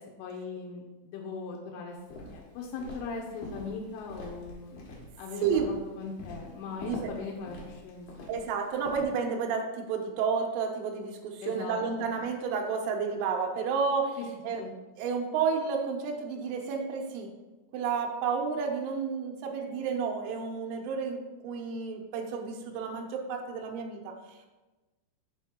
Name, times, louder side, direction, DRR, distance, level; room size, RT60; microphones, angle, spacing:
voice 1, 0.2-2.0 2.3-4.9 5.2-8.4 11.4-12.1 14.2-14.3 14.6-14.7, left 4 dB, 85° left, 0 dB, 3.2 m, -40 dB
Walk footsteps, 2.0-9.0, left 1 dB, 65° left, 2.8 m, -45 dB
voice 2, 6.8-7.1 8.3-14.2 14.4-14.6 15.0-17.3 17.7-21.2 21.4-24.0, right 5 dB, 85° right, 1 dB, 2.4 m, -31 dB
6.9 x 3.6 x 4.3 m, 1.2 s
omnidirectional pair, 5.5 m